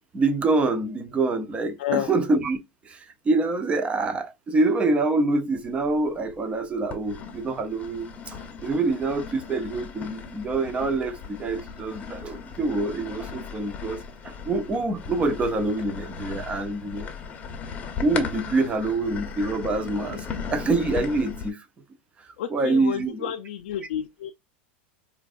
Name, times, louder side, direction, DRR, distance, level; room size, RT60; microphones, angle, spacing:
voice 1, 0.1-2.6 2.8-17.1 18.0-21.6 22.5-23.3, right 3 dB, 20° right, 0.6 m, -26 dB
voice 2, 1.8-2.1 22.4-24.3, left 10 dB, 75° left, 0.5 m, -30 dB
sound 1, 5.7-6.3 6.9-21.5, left 6 dB, 25° left, 0.8 m, -37 dB
4.5 x 2.5 x 2.4 m
supercardioid pair, 130°, 6 cm